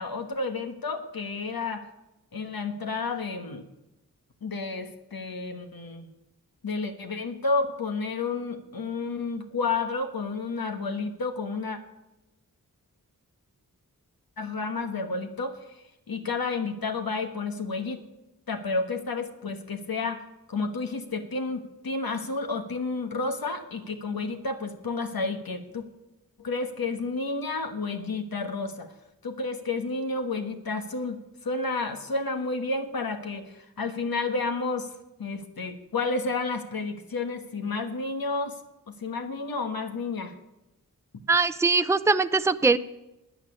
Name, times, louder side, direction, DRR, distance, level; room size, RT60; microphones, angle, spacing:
voice 1, 0.0-1.8 2.3-3.7 4.4-6.1 6.6-11.8 14.4-15.6 16.1-18.0 18.5-20.2 20.5-25.8 26.4-28.9 29.2-34.9 35.2-38.6 38.9-40.3, left 3 dB, 80° left, 6 dB, 1.4 m, -31 dB
voice 2, 41.3-42.8, right 4 dB, 10° right, 12 dB, 0.5 m, -21 dB
13.5 x 9.1 x 9.7 m, 0.97 s
wide cardioid pair, 70°, 36 cm